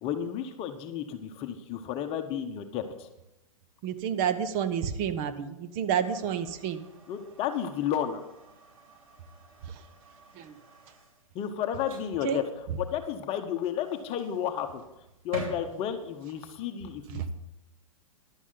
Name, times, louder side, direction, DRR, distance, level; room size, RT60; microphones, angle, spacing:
voice 1, 0.0-3.1 7.1-8.2 11.3-12.4 12.8-14.8 15.2-17.3, left 9 dB, 35° left, 7 dB, 1.0 m, -32 dB
voice 2, 3.8-6.8 10.4-10.5 12.2-12.4 17.1-17.2, right 8 dB, 40° right, 11 dB, 1.2 m, -29 dB
sound 1, 6.0-16.4, right 3 dB, 75° right, 4.1 m, -48 dB
14.5 x 11.5 x 4.0 m, 0.91 s
hypercardioid pair, 125°, 18 cm